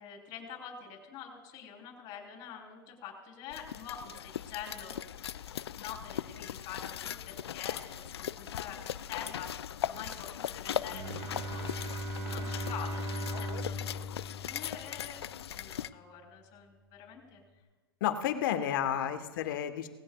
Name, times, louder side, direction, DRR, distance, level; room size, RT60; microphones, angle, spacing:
voice 1, 0.0-5.0 5.8-9.5 9.8-11.9 12.2-13.8 14.4-17.4 18.6-19.1, left 8 dB, 35° left, 1 dB, 3.9 m, -46 dB
sound 1, 3.5-15.9, left 10 dB, 90° left, 0.4 m, -39 dB
Bowed string instrument, 10.9-15.3, equal, 55° right, 1.7 m, -38 dB
voice 2, 18.0-19.9, left 10 dB, 55° left, 7 dB, 1.3 m, -31 dB
19.0 x 16.0 x 2.4 m, 1.3 s
hypercardioid pair, 130°, 13 cm